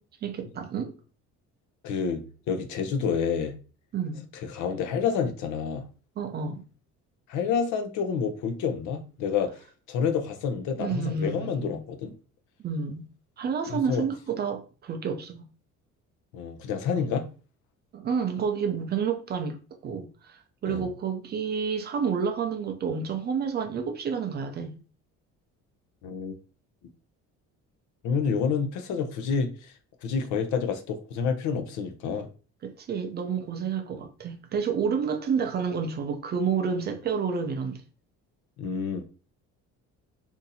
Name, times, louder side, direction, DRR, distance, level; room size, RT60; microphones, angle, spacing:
voice 1, 0.2-1.0 3.9-4.2 6.2-6.6 10.8-11.8 12.6-13.0 13.4-15.4 17.9-24.8 32.6-37.8, right 6 dB, 35° right, 0.4 m, -30 dB
voice 2, 1.8-3.6 4.4-5.8 7.3-9.5 9.9-12.1 13.7-14.0 16.3-17.2 20.7-20.9 26.0-26.3 28.0-29.5 30.0-32.3 38.6-39.0, left 6 dB, 70° left, 0.7 m, -28 dB
2.7 x 2.6 x 3.9 m
cardioid pair, 155°, 30 cm